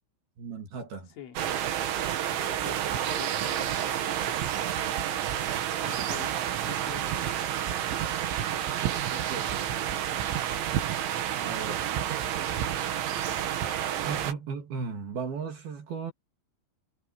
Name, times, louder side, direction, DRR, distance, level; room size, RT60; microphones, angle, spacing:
voice 1, 0.4-1.1 5.9-6.0 8.9-9.6 11.4-11.9 14.1-16.1, right 5 dB, 50° right, 4.2 m, -36 dB
voice 2, 1.1-1.5 2.4-4.2 5.8-7.5, left 8 dB, 70° left, 6.0 m, -46 dB
sound 1, 1.4-14.3, right 10 dB, 70° right, 4.1 m, -30 dB
omnidirectional pair, 5.9 m